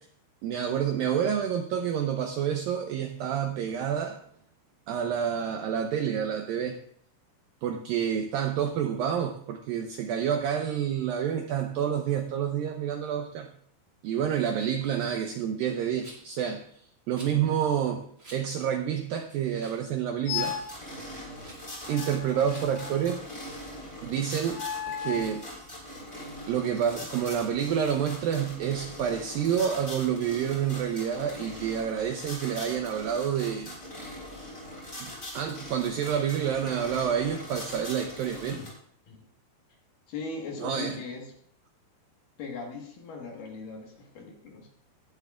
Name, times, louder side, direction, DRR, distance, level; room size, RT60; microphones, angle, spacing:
voice 1, 0.4-4.2 4.9-6.8 7.6-13.5 14.0-16.6 17.1-18.0 18.3-20.6 21.9-23.2 24.0-24.6 25.0-25.5 26.5-33.8 35.0-38.6 40.6-41.0, right 8 dB, 85° right, 5 dB, 2.0 m, -28 dB
Rattle, 16.0-16.4 17.1-17.4 18.2-18.4 18.9-19.0 19.5-19.9 20.1-20.6 21.3-21.6 22.4-22.7, right 1 dB, 25° right, 2.2 m, -48 dB
sound 1, 20.3-20.8 21.9-23.2 24.5-25.4, left 9 dB, 75° left, 2.4 m, -35 dB
sound 2, 20.3-38.7, left 1 dB, 15° left, 3.9 m, -42 dB
voice 2, 40.1-41.3 42.4-44.7, left 4 dB, 60° left, 1 dB, 2.8 m, -39 dB
18.5 x 11.0 x 2.4 m, 0.63 s
omnidirectional pair, 5.0 m